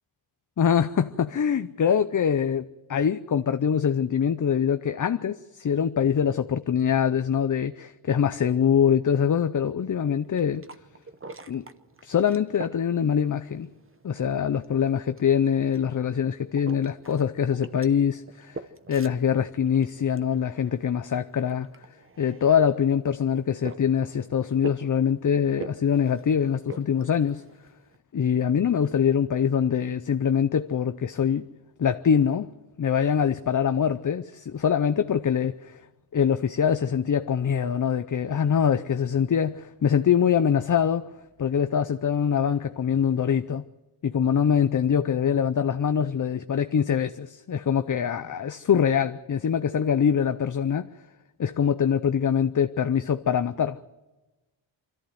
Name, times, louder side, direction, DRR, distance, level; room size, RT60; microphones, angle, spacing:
voice 1, 0.6-10.6 11.5-11.6 12.0-13.7 14.0-18.6 18.9-21.7 22.2-27.4 28.1-31.5 31.8-32.5 32.8-35.8 36.1-41.1 41.4-43.6 44.0-50.9 51.4-53.8, left 8 dB, 40° left, 0.6 m, -24 dB
sound 1, 10.1-28.0, right 3 dB, 25° right, 0.9 m, -46 dB
25.5 x 14.0 x 7.9 m
wide cardioid pair, 155°, 49 cm